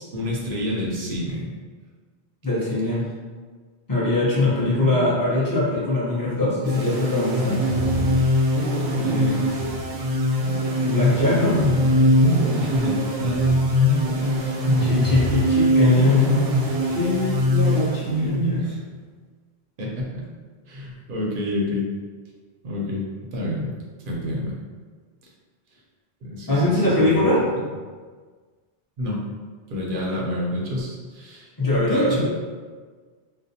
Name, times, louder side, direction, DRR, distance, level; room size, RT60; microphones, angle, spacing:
voice 1, 0.0-1.5 4.4-4.9 8.9-9.6 10.8-11.2 11.5-12.2 12.6-15.1 15.5-15.6 18.1-18.8 19.8-20.2 20.7-21.9 22.6-23.7 24.1-24.6 26.2-27.3 29.0-29.2 29.7-32.3, left 1 dB, 60° right, -3 dB, 0.6 m, -27 dB
voice 2, 2.4-3.0 3.9-7.6 10.8-11.5 14.9-16.4 16.9-18.6 26.5-27.4 29.9-30.0 31.6-32.1, left 2 dB, 20° left, -9 dB, 0.6 m, -21 dB
sound 1, 6.6-18.4, equal, 85° right, 0.9 m, -22 dB
2.5 x 2.1 x 2.6 m, 1.5 s
omnidirectional pair, 1.1 m